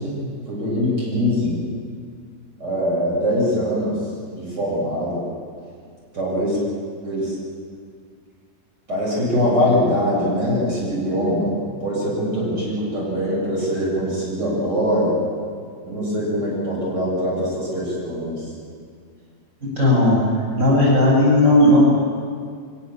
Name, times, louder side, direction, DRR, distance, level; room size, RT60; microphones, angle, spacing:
voice 1, 0.0-1.6 2.6-4.0 4.3-5.2 6.1-6.6 7.0-7.3 8.9-15.2 15.9-18.5, equal, 70° right, -6 dB, 8.7 m, -22 dB
voice 2, 19.8-20.2 20.6-21.9, left 1 dB, 45° right, -6 dB, 8.6 m, -15 dB
24.0 x 23.5 x 7.5 m, 2.1 s
omnidirectional pair, 1.9 m